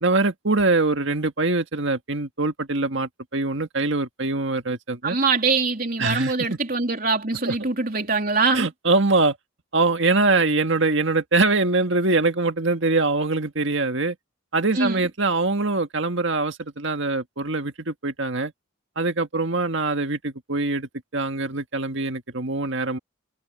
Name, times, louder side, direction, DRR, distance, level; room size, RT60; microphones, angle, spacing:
voice 1, 0.0-5.2 6.0-6.6 7.5-7.6 8.5-9.4 9.7-14.2 14.5-18.5 19.0-23.0, right 3 dB, 60° right, 1.8 m, -23 dB
voice 2, 5.0-8.7 14.7-15.1, right 4 dB, 45° right, 3.5 m, -23 dB
head